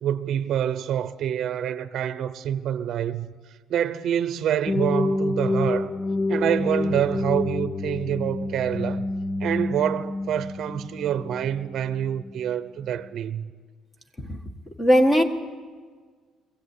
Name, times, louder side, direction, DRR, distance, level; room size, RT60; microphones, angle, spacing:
voice 1, 0.0-3.3 3.7-5.9 6.3-9.0 9.4-13.5, right 10 dB, 50° right, 0.8 m, -26 dB
sound 1, 4.7-12.5, left 2 dB, 35° left, 0.9 m, -28 dB
voice 2, 14.8-15.2, equal, 15° left, 1.6 m, -18 dB
22.5 x 16.5 x 8.5 m
cardioid pair, 150°, 0 cm